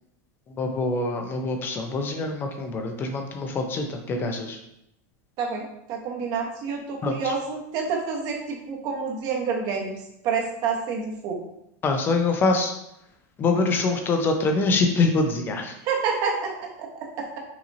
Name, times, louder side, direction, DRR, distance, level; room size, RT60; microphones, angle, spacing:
voice 1, 0.5-4.6 7.0-7.3 11.8-12.7 13.4-15.8, left 3 dB, 25° left, 5 dB, 0.6 m, -24 dB
voice 2, 5.4-10.0 10.2-11.4 15.8-17.4, right 5 dB, 45° right, 0 dB, 1.1 m, -28 dB
5.7 x 2.7 x 2.7 m, 0.79 s
supercardioid pair, 140°, 9 cm